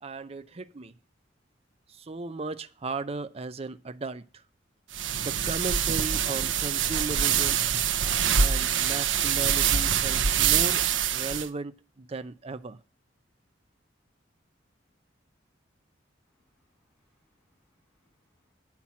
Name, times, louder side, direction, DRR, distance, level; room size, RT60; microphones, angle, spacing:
voice 1, 0.0-0.9 2.0-4.2 5.2-7.6 8.4-10.8 11.1-12.8, right 3 dB, 30° right, 0.6 m, -36 dB
sound 1, 4.9-11.5, right 8 dB, 80° right, 0.8 m, -25 dB
voice 2, 16.2-18.5, left 1 dB, 10° left, 7.0 m, -75 dB
9.0 x 6.0 x 7.1 m
head